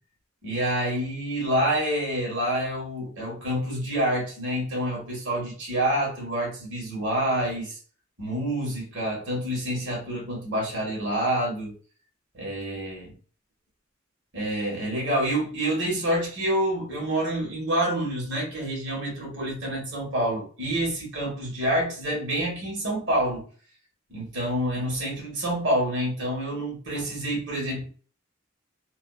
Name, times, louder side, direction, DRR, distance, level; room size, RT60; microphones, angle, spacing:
voice 1, 0.4-7.8 8.2-11.8 12.3-13.1 14.3-23.5 24.1-27.9, right 1 dB, 60° right, -2 dB, 1.3 m, -27 dB
2.6 x 2.3 x 2.3 m, 0.40 s
head